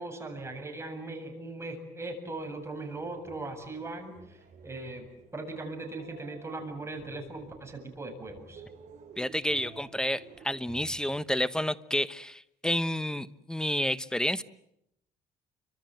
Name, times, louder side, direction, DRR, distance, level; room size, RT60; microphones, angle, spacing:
voice 1, 0.0-5.1 5.3-8.6, right 2 dB, 15° right, 4 dB, 7.7 m, -39 dB
sound 1, 2.3-11.1, right 4 dB, 45° right, 7.3 m, -53 dB
voice 2, 9.2-14.4, left 1 dB, 5° left, 14 dB, 1.1 m, -30 dB
30.0 x 25.0 x 7.9 m, 0.78 s
cardioid pair, 110°, 17 cm